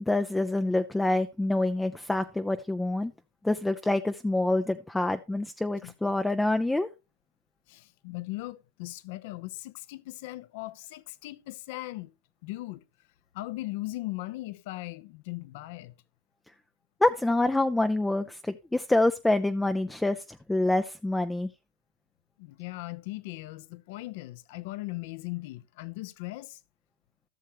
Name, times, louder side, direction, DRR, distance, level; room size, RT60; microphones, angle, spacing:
voice 1, 0.1-3.1 3.4-6.9 17.0-20.2 20.5-21.5, left 2 dB, 5° left, 0.5 m, -26 dB
voice 2, 7.7-12.1 12.4-12.8 13.3-15.9 22.4-26.6, left 19 dB, 60° left, 0.7 m, -38 dB
14.5 x 6.5 x 3.0 m
hypercardioid pair, 125°, 0 cm